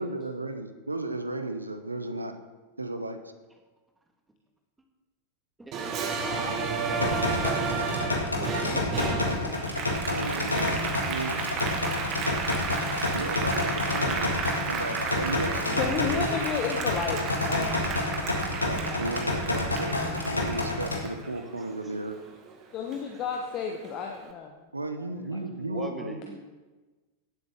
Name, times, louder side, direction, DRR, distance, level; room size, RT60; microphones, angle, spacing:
voice 1, 0.0-2.4 2.8-3.2 10.1-11.5 13.1-14.3 14.7-16.3 18.6-20.0 20.3-22.2 24.7-26.2, right 2 dB, 80° right, 8 dB, 0.9 m, -34 dB
voice 2, 5.6-5.9 6.3-6.4 6.9-9.0 25.0-26.4, right 1 dB, 10° right, 4 dB, 1.6 m, -42 dB
Applause, 5.7-22.5 22.9-24.1, right 5 dB, 35° right, 1.5 m, -33 dB
voice 3, 6.2-7.5 15.8-18.2 22.7-24.7 25.3-25.4, left 7 dB, 35° left, 3 dB, 1.0 m, -33 dB
sound 1, 7.0-21.0, left 2 dB, 80° left, 1.6 m, -29 dB
sound 2, 8.7-10.3, left 2 dB, 55° left, 2.4 m, -40 dB
17.5 x 7.9 x 3.5 m, 1.3 s
figure-of-eight pair, 90°, 0 cm